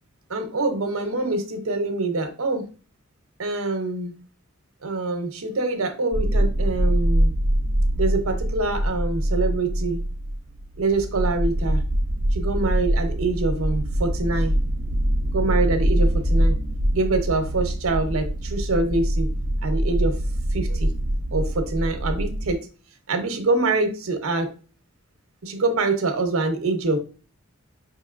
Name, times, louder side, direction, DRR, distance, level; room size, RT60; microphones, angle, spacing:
voice 1, 0.3-2.7 3.4-4.2 4.8-7.3 8.0-10.0 10.8-11.8 12.3-14.5 15.3-16.6 16.9-19.3 19.6-20.2 20.5-20.9 21.3-22.7 23.1-24.5 25.4-27.0, right 3 dB, 80° right, 6 dB, 0.8 m, -25 dB
sound 1, 6.1-22.5, right 1 dB, 40° right, 0.5 m, -24 dB
5.2 x 3.0 x 2.5 m, 0.35 s
head